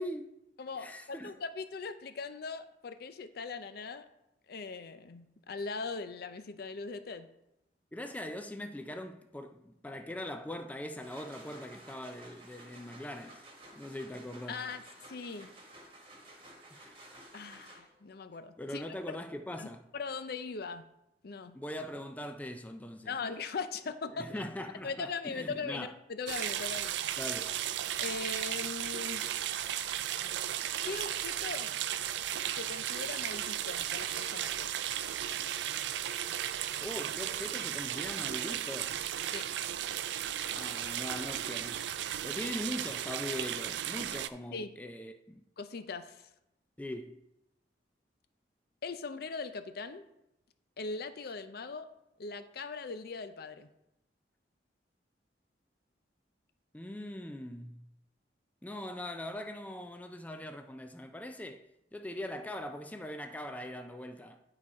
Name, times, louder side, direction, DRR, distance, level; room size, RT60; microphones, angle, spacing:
voice 1, 0.0-0.4 0.8-1.3 7.9-13.4 13.7-14.6 16.7-17.1 18.6-19.9 21.5-23.1 24.1-25.9 27.2-27.5 36.8-39.0 40.5-41.9 42.2-45.4 46.8-47.2 56.7-57.9 58.6-61.6 61.9-64.4, left 1 dB, 10° left, 0.4 m, -41 dB
voice 2, 0.6-4.1 4.5-7.3 14.5-15.5 17.3-19.0 19.6-20.8 21.2-21.6 23.1-24.3 24.8-26.9 28.0-29.3 30.8-31.7 32.6-34.8 39.3-39.4 44.5-44.7 45.6-46.3 48.8-50.0 50.8-51.9 52.2-53.7, left 4 dB, 60° left, 0.5 m, -40 dB
sound 1, 10.8-18.1, right 1 dB, 30° right, 1.3 m, -53 dB
sound 2, 26.3-44.3, right 11 dB, 70° right, 0.4 m, -35 dB
9.9 x 4.1 x 4.7 m
head